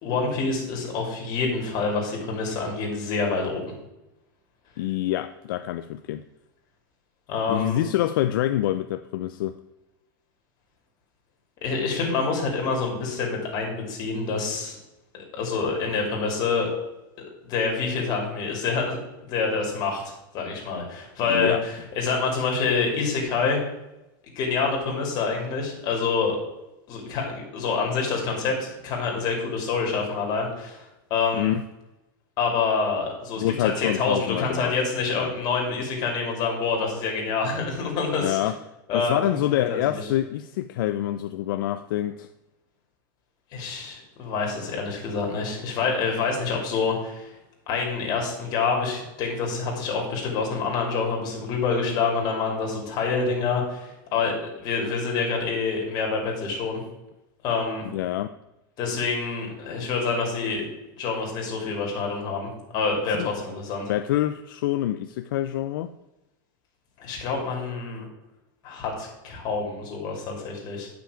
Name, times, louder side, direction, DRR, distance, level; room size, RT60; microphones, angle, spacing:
voice 1, 0.0-3.6 7.3-7.8 11.6-14.8 15.1-16.7 17.4-19.0 19.3-23.6 24.4-26.4 26.9-31.5 32.4-38.4 38.9-40.0 43.5-47.3 47.7-56.8 57.4-57.8 58.8-60.6 61.0-63.9 67.0-68.0 68.6-70.9, left 4 dB, 35° left, 0 dB, 2.7 m, -27 dB
voice 2, 4.8-6.2 7.5-9.6 21.2-21.6 31.3-31.6 33.4-34.8 35.2-35.3 38.2-38.6 38.9-42.3 57.9-58.3 63.1-63.3 63.9-65.9, left 13 dB, 70° left, 10 dB, 0.4 m, -26 dB
8.9 x 5.9 x 4.9 m, 0.96 s
supercardioid pair, 150°, 12 cm